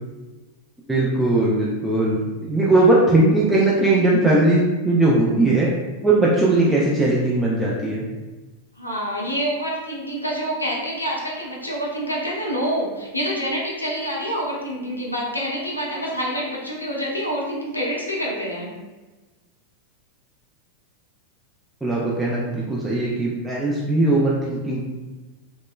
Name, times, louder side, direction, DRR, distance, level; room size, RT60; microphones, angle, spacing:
voice 1, 0.9-5.7 6.0-8.1 21.8-24.8, right 2 dB, 5° right, -6 dB, 0.5 m, -19 dB
voice 2, 8.8-18.7, equal, 85° left, -4 dB, 0.6 m, -27 dB
3.0 x 3.0 x 2.2 m, 1.2 s
figure-of-eight pair, 90°, 0 cm